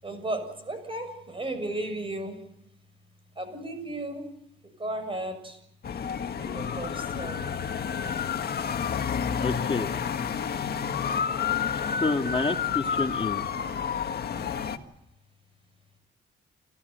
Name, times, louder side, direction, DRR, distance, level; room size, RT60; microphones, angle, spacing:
voice 1, 0.0-2.4 3.4-4.3 4.8-5.6 6.4-7.4, right 1 dB, 25° right, 9 dB, 7.1 m, -34 dB
sound 1, 5.8-14.8, left 7 dB, 50° left, 1.7 m, -30 dB
voice 2, 9.4-9.9 12.0-13.4, left 4 dB, 25° left, 3 dB, 2.2 m, -28 dB
29.5 x 14.0 x 9.5 m, 0.86 s
cardioid pair, 90°, 20 cm